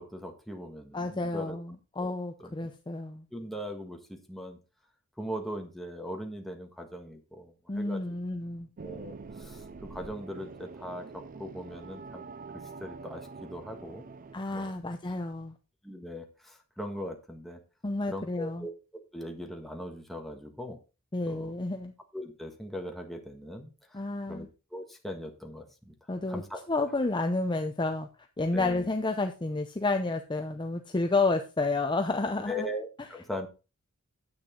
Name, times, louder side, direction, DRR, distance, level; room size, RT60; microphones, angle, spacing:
voice 1, 0.0-1.6 2.0-2.1 2.4-2.7 3.3-4.6 5.2-8.0 8.8-12.3 12.8-14.0 14.5-14.7 15.8-17.6 18.1-18.7 19.1-20.8 21.3-21.5 22.1-24.0 24.3-24.5 24.7-25.9 26.3-26.6 28.5-28.9 32.5-33.5, equal, ahead, 2 dB, 1.6 m, -40 dB
voice 2, 0.9-3.3 7.7-8.7 14.3-15.5 17.8-18.7 21.1-21.9 23.9-24.5 26.1-26.4 26.7-28.1 28.4-32.7, left 3 dB, 20° left, 6 dB, 0.7 m, -30 dB
sound 1, 8.8-14.4, right 4 dB, 40° right, 0.5 m, -45 dB
9.8 x 8.2 x 3.8 m, 0.31 s
head